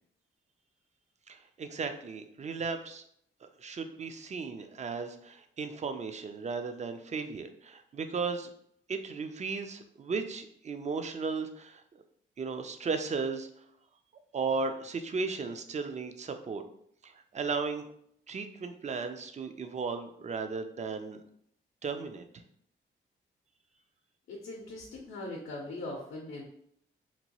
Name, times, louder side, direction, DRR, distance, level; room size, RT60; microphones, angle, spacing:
voice 1, 1.3-3.0 3.6-8.5 8.9-11.8 12.4-13.5 14.3-16.6 17.0-17.8 18.3-21.2 21.8-22.2, right 4 dB, 35° right, 8 dB, 0.4 m, -35 dB
voice 2, 24.3-26.5, left 2 dB, 85° left, -2 dB, 0.6 m, -40 dB
2.9 x 2.2 x 2.9 m, 0.68 s
cardioid pair, 55°, 21 cm